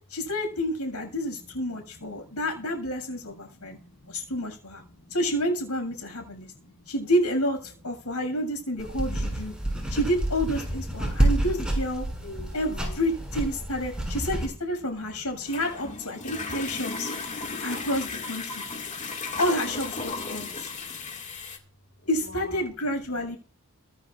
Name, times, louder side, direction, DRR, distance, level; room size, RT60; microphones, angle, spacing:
voice 1, 0.1-3.8 4.1-4.8 5.1-6.5 6.9-9.5 9.9-12.1 12.5-17.1 17.6-18.6 19.4-20.7 22.1-23.4, equal, 80° left, 3 dB, 7.3 m, -29 dB
voice 2, 3.3-5.1 6.2-6.9 9.5-10.0 12.2-13.1 17.3-17.7 18.6-19.4 20.5-21.2 22.2-22.7, left 2 dB, 60° left, 1 dB, 3.7 m, -48 dB
sound 1, 8.8-14.5, right 1 dB, 5° right, 6.9 m, -28 dB
sound 2, 14.6-21.6, left 4 dB, 35° left, 2.3 m, -35 dB
24.5 x 9.9 x 2.6 m, 0.41 s
head